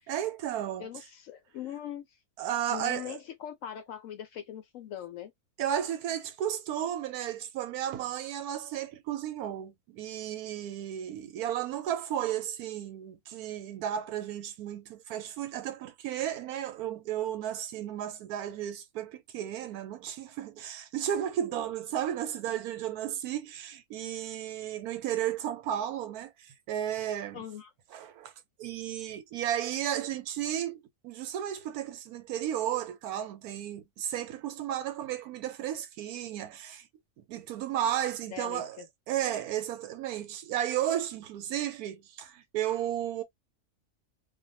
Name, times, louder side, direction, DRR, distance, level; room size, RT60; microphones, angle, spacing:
voice 1, 0.1-0.9 2.4-3.2 5.6-27.4 27.9-28.3 28.6-36.9 37.2-43.2, right 11 dB, 80° right, 1.1 m, -34 dB
voice 2, 0.8-2.1 2.7-5.3 27.3-27.7 38.3-38.9, left 10 dB, 70° left, 0.8 m, -41 dB
2.4 x 2.2 x 2.6 m
omnidirectional pair, 1.6 m